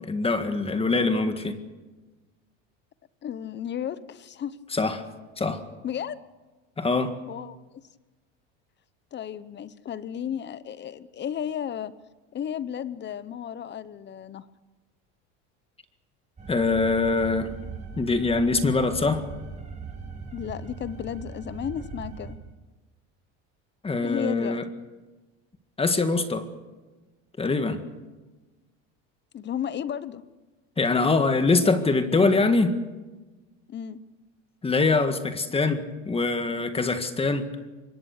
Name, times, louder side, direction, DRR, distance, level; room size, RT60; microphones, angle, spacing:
voice 1, 0.0-1.6 4.7-5.0 5.4-5.6 6.8-7.1 16.5-17.5 18.0-19.3 23.8-24.6 25.8-26.5 27.4-27.8 30.8-32.8 34.6-37.5, left 3 dB, 15° left, 9 dB, 1.8 m, -23 dB
voice 2, 3.2-4.6 5.8-6.2 7.3-7.8 9.1-11.9 12.3-14.5 20.3-22.4 24.0-24.6 29.3-30.2 33.7-34.0, left 9 dB, 30° left, 16 dB, 1.0 m, -33 dB
sound 1, 16.4-22.3, right 4 dB, 20° right, 5.7 m, -39 dB
24.5 x 22.0 x 6.7 m, 1.2 s
supercardioid pair, 120°, 34 cm